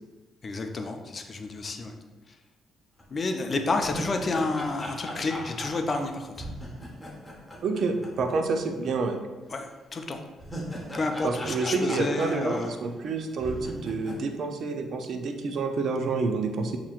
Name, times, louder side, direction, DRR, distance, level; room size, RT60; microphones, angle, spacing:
voice 1, 0.4-1.9 2.3-2.4 3.1-6.5 9.5-10.2 10.9-12.8, left 3 dB, 40° left, 5 dB, 0.5 m, -30 dB
sound 1, 3.0-3.1 3.5-8.6 8.8-8.9 10.1-13.1 13.4-14.2, equal, 10° left, 1.0 m, -39 dB
voice 2, 7.6-9.2 11.2-16.8, right 4 dB, 65° right, 6 dB, 0.5 m, -28 dB
7.1 x 2.9 x 2.4 m, 1.2 s
cardioid pair, 90°, 0 cm